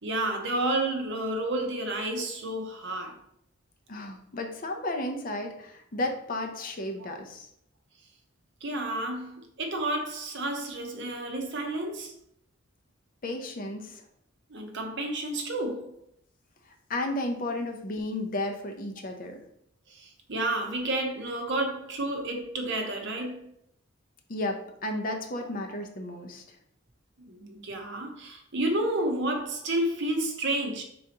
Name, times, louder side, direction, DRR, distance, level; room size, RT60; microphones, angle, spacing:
voice 1, 0.0-3.2 7.0-7.1 8.6-12.1 14.5-16.0 19.9-23.5 27.3-30.8, right 1 dB, 60° right, 0.8 m, -31 dB
voice 2, 3.9-7.5 13.2-14.0 16.9-19.4 24.3-26.4, left 1 dB, 45° left, 0.6 m, -33 dB
4.7 x 3.9 x 2.9 m
head